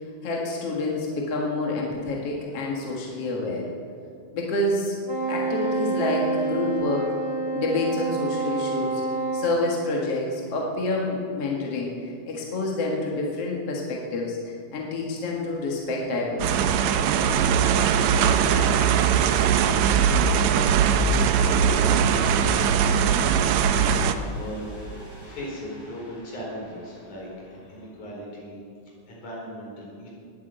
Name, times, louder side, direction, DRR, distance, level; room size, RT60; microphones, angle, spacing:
voice 1, 0.2-3.7 4.3-5.0 5.3-7.1 7.5-9.0 9.3-16.8, left 2 dB, 55° left, -2 dB, 2.6 m, -28 dB
Wind instrument woodwind instrument, 5.0-9.5, right 3 dB, 40° right, 3.0 m, -28 dB
sound 1, 15.7-27.9, left 1 dB, 20° left, 4.0 m, -45 dB
sound 2, 16.4-24.1, right 7 dB, 75° right, 1.9 m, -20 dB
voice 2, 17.9-22.5 22.8-28.6 28.9-30.1, equal, 75° left, -4 dB, 6.0 m, -38 dB
20.5 x 8.6 x 8.0 m, 2.4 s
omnidirectional pair, 3.6 m